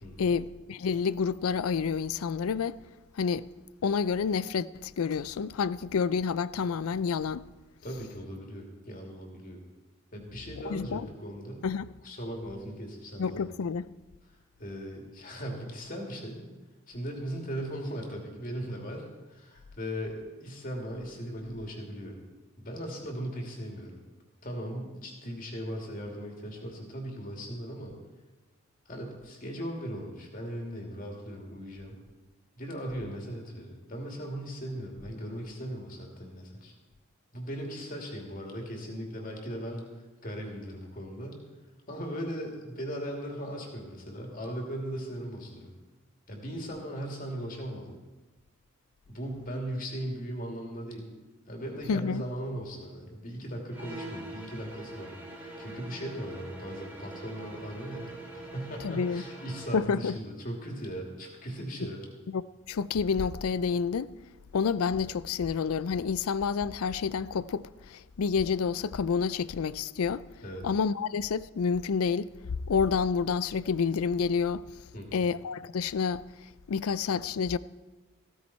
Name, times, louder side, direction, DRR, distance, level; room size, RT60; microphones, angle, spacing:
voice 1, 0.2-2.8 3.2-3.5 3.8-7.4 10.7-11.0 11.6-11.9 13.2-13.9 51.9-52.2 58.8-59.2 59.7-60.2 62.3-62.4 62.7-64.1 64.5-70.2 70.6-72.3 72.7-74.6 75.1-76.2 76.7-77.6, left 5 dB, 90° left, 0.4 m, -29 dB
voice 2, 7.8-9.6 10.1-11.6 12.0-13.5 14.6-16.4 16.9-22.2 22.6-24.0 24.4-27.9 28.9-31.9 32.6-36.7 37.3-39.9 40.2-41.4 41.9-45.7 46.3-48.0 49.1-51.1 51.5-62.1 70.4-70.7 74.9-75.2, equal, 40° left, 2.6 m, -38 dB
sound 1, 53.7-59.9, right 1 dB, 10° right, 1.8 m, -44 dB
15.5 x 14.0 x 4.3 m
head